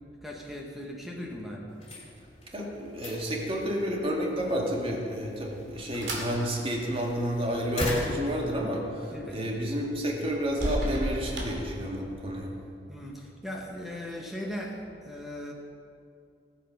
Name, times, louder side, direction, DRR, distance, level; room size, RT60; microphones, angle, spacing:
voice 1, 0.2-1.8 9.1-9.8 12.9-15.5, left 1 dB, ahead, -2 dB, 1.1 m, -39 dB
sound 1, 1.7-9.2, left 1 dB, 35° left, 2.9 m, -41 dB
voice 2, 2.5-12.5, equal, 35° right, -1 dB, 2.1 m, -30 dB
sound 2, 5.2-12.4, right 1 dB, 85° right, 2.4 m, -38 dB
18.0 x 8.3 x 5.3 m, 2.5 s
head